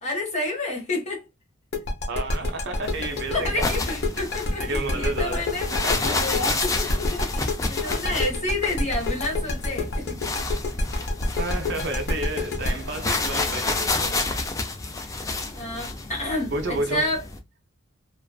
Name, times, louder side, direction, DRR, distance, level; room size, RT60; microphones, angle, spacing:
voice 1, 0.0-1.2 3.3-5.7 6.1-10.1 15.1-15.2 15.5-17.2, left 2 dB, 35° left, 1.1 m, -29 dB
sound 1, 1.7-14.5, left 2 dB, 50° left, 0.7 m, -27 dB
voice 2, 2.1-3.7 4.6-5.5 5.8-6.2 11.4-14.3 16.5-17.1, right 2 dB, 55° right, 0.5 m, -31 dB
sound 2, 2.8-17.4, left 3 dB, 15° left, 0.3 m, -30 dB
2.4 x 2.4 x 2.2 m
head